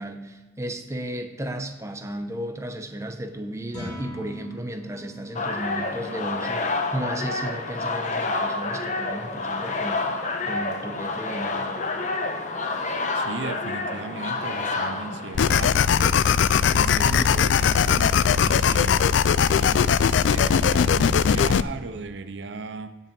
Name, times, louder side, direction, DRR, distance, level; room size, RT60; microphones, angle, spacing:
voice 1, 0.0-12.0, right 1 dB, 15° right, 6 dB, 0.8 m, -34 dB
sound 1, 3.6-10.0, left 1 dB, 20° left, 2.2 m, -44 dB
sound 2, 5.3-15.8, left 3 dB, 40° left, 0.9 m, -29 dB
voice 2, 13.1-16.2 16.5-19.1 19.4-23.0, right 4 dB, 65° right, 10 dB, 0.5 m, -36 dB
sound 3, 15.3-21.6, left 7 dB, 70° left, 0.4 m, -20 dB
16.0 x 5.5 x 5.3 m, 1.3 s
head